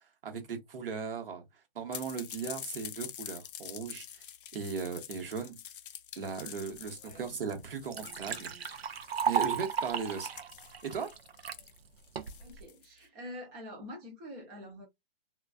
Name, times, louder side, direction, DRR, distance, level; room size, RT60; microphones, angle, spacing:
voice 1, 0.2-1.4 1.7-4.2 4.5-5.6 6.2-9.0 9.3-10.3 10.8-11.1, right 6 dB, 70° right, 1.0 m, -37 dB
sound 1, 1.9-13.0, left 9 dB, 60° left, 0.4 m, -47 dB
voice 2, 7.0-7.4 12.4-14.9, left 1 dB, 10° right, 0.4 m, -46 dB
Liquid, 7.1-7.2 7.6-11.6 12.2-12.6, right 7 dB, 85° right, 0.6 m, -34 dB
2.4 x 2.2 x 2.3 m
hypercardioid pair, 140°, 30 cm